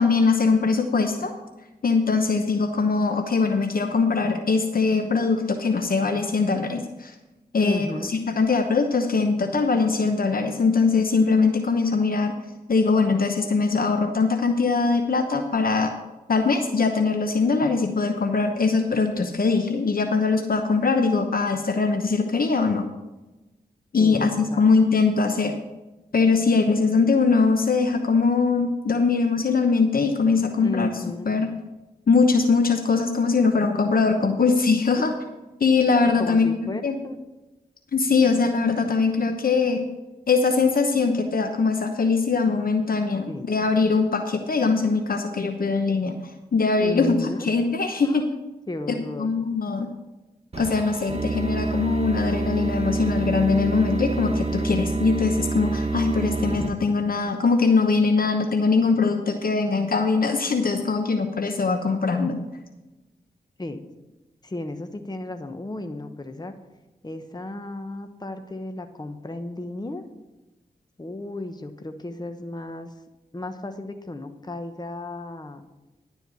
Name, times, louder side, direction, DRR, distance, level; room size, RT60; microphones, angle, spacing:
voice 1, 0.0-1.3 1.8-7.1 7.5-12.4 12.7-15.9 16.3-22.8 23.9-25.5 26.1-30.9 31.3-31.5 32.1-35.1 35.6-36.9 37.9-39.8 40.3-46.1 46.5-48.3 48.9-49.9 50.6-62.4, left 4 dB, 60° left, 5 dB, 0.9 m, -22 dB
voice 2, 7.6-8.1 23.9-24.7 30.6-31.3 35.8-37.2 43.3-43.5 46.8-47.5 48.0-48.3 48.7-49.3 63.6-63.8 64.4-66.5 67.0-70.0 71.0-72.9 73.3-75.6, left 1 dB, 25° left, 7 dB, 1.0 m, -34 dB
sound 1, 50.5-56.7, right 3 dB, 40° right, 1.4 m, -27 dB
11.5 x 4.5 x 8.1 m, 1.1 s
cardioid pair, 40°, 17 cm